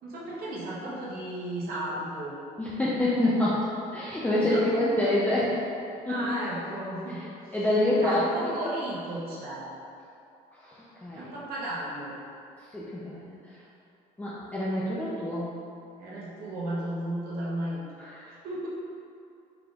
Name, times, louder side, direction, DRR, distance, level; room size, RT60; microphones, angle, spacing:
voice 1, 0.0-2.4 4.4-4.6 6.1-7.6 8.0-9.7 11.1-12.1 16.0-17.8 18.4-18.7, right 1 dB, 65° right, -7 dB, 1.0 m, -34 dB
voice 2, 2.6-3.6 3.9-5.6 6.1-6.2 7.5-8.5 10.6-11.3 12.7-13.4 14.2-15.5 18.0-18.3, left 1 dB, 10° left, -8 dB, 0.5 m, -26 dB
4.7 x 3.7 x 2.4 m, 2.6 s
cardioid pair, 110°, 17 cm